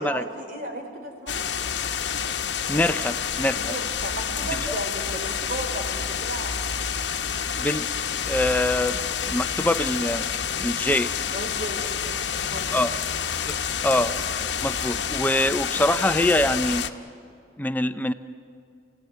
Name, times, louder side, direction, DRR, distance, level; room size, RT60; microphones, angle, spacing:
voice 1, 0.0-1.5 3.5-6.5 11.3-12.8, right 1 dB, 55° right, 3 dB, 3.7 m, -35 dB
sound 1, 1.3-16.9, left 7 dB, 85° left, 0.9 m, -28 dB
voice 2, 2.7-3.8 4.6-4.7 7.6-7.9 8.3-9.0 9.2-10.3 10.6-11.1 12.7-12.9 13.5-13.6 13.8-14.1 14.6-16.9 17.6-18.1, left 1 dB, 10° left, 11 dB, 0.5 m, -24 dB
28.5 x 17.0 x 9.3 m, 2.3 s
head